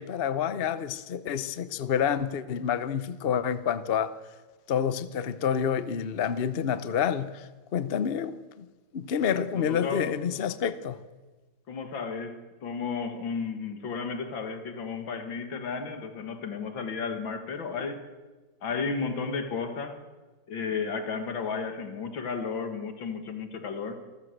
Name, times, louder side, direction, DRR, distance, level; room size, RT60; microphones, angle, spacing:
voice 1, 0.0-4.2 4.7-7.5 7.7-8.7 8.9-11.0, left 8 dB, 50° left, 0.7 m, -28 dB
voice 2, 9.5-10.1 11.7-18.1 18.6-20.0 20.5-24.0, left 5 dB, 85° left, 2.7 m, -33 dB
26.5 x 13.5 x 8.0 m
omnidirectional pair, 2.1 m